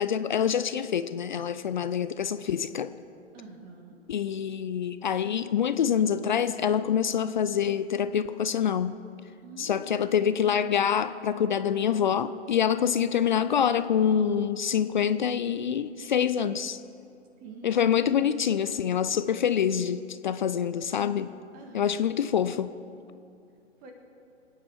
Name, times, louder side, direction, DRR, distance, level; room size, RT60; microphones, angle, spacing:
voice 1, 0.0-2.9 4.1-9.0 9.6-16.8 17.6-21.3 21.7-22.7, left 8 dB, 40° left, 12 dB, 0.5 m, -26 dB
voice 2, 3.3-4.0 9.4-10.0 17.4-18.0 21.5-22.1 23.8-23.9, right 3 dB, 20° right, 3 dB, 1.8 m, -46 dB
24.5 x 9.7 x 4.6 m, 2.5 s
figure-of-eight pair, 130°, 37 cm